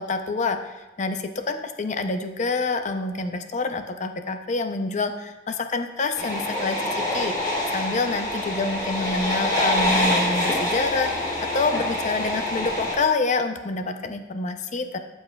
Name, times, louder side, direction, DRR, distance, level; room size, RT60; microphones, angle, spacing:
voice 1, 0.0-7.4 7.7-15.0, left 3 dB, 40° left, 7 dB, 0.5 m, -27 dB
sound 1, 6.2-13.0, left 1 dB, 20° left, 1.7 m, -25 dB
13.0 x 5.5 x 2.3 m, 1.1 s
head